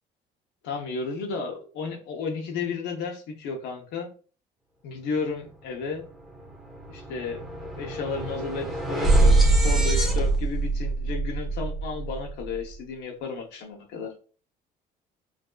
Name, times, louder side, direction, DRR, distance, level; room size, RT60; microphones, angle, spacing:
voice 1, 0.6-4.1 4.8-6.0 6.9-7.4 7.8-14.1, left 4 dB, 85° left, 1 dB, 0.9 m, -33 dB
sound 1, 5.9-6.0 6.3-12.6, right 2 dB, ahead, 0.9 m, -24 dB
4.8 x 2.7 x 2.3 m, 0.39 s
cardioid pair, 110°, 17 cm